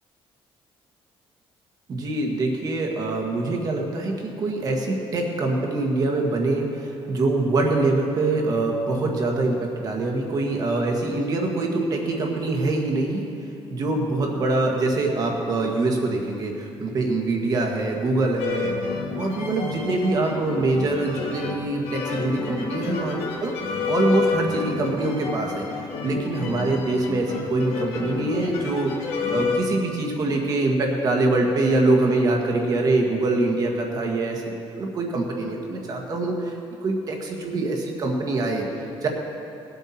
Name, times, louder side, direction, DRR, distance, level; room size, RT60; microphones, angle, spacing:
voice 1, 1.9-13.3 13.7-23.6 23.9-39.1, right 2 dB, 40° right, 1 dB, 1.6 m, -24 dB
sound 1, 18.4-29.6, left 5 dB, 85° left, 1.6 m, -30 dB
19.5 x 8.2 x 4.3 m, 2.7 s
cardioid pair, 175°, 10 cm